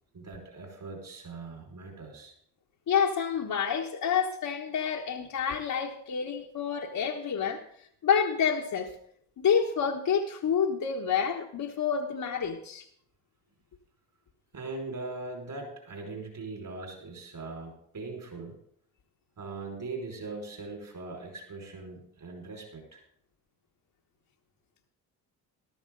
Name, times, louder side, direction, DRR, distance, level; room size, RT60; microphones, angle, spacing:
voice 1, 0.1-2.3 14.5-18.6 19.4-23.0, right 3 dB, 50° right, 2 dB, 5.3 m, -40 dB
voice 2, 2.9-8.9 9.4-12.9, left 7 dB, 50° left, -1 dB, 1.3 m, -28 dB
14.0 x 12.0 x 3.9 m, 0.65 s
hypercardioid pair, 60°, 43 cm